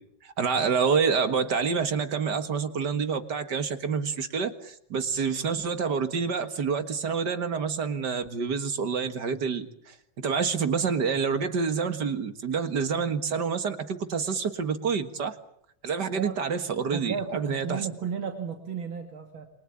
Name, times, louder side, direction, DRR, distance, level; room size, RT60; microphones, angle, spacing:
voice 1, 0.2-15.4 15.8-17.9, right 5 dB, 60° right, 10 dB, 2.2 m, -28 dB
voice 2, 16.9-19.5, right 6 dB, 85° right, 4 dB, 3.1 m, -34 dB
28.5 x 23.5 x 8.6 m, 0.71 s
omnidirectional pair, 2.1 m